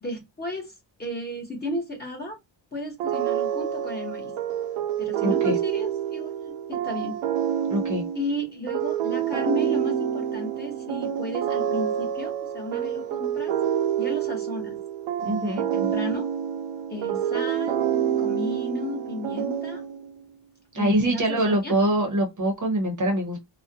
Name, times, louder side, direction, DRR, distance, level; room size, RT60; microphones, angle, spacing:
voice 1, 0.0-0.7 1.0-2.4 2.7-4.3 5.0-7.2 8.1-13.5 14.0-14.8 15.2-16.2 16.9-17.9 18.2-19.8 20.8-21.7, left 1 dB, 20° left, 0.9 m, -34 dB
sound 1, 3.0-20.2, right 10 dB, 85° right, 0.6 m, -27 dB
voice 2, 5.2-5.6 7.7-8.0 15.3-15.6 20.7-23.4, right 1 dB, 40° right, 0.7 m, -24 dB
2.4 x 2.1 x 2.6 m
wide cardioid pair, 155°, 47 cm